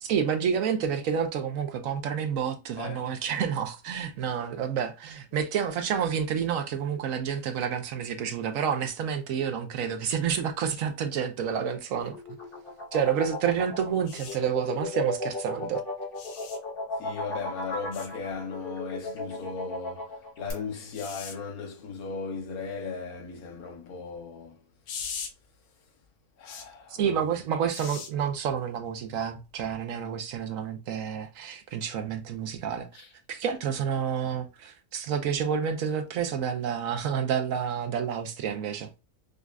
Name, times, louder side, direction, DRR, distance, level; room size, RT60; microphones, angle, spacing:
voice 1, 0.0-12.2 12.9-15.8 27.0-32.9 33.3-38.9, right 7 dB, 70° right, 1.0 m, -29 dB
voice 2, 2.8-3.1 17.0-20.1 20.4-24.6 26.4-27.1 32.9-33.1, left 5 dB, 85° left, 1.4 m, -37 dB
sound 1, 12.0-20.5, left 2 dB, 40° left, 1.4 m, -35 dB
sound 2, 14.1-14.4 16.2-16.6 17.9-18.1 20.9-21.4 24.9-25.3 26.5-26.7 27.7-28.1 29.6-29.7, left 6 dB, 70° left, 1.0 m, -39 dB
5.2 x 2.4 x 2.3 m
omnidirectional pair, 1.5 m